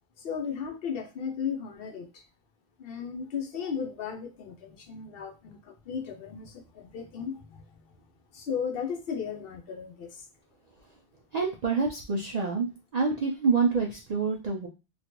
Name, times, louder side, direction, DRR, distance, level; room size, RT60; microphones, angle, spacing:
voice 1, 0.2-2.2 2.8-7.6 8.3-10.3, left 7 dB, 65° left, 4 dB, 0.8 m, -35 dB
voice 2, 11.3-14.7, right 4 dB, 55° right, 0 dB, 0.5 m, -27 dB
3.0 x 2.3 x 2.9 m, 0.29 s
omnidirectional pair, 1.1 m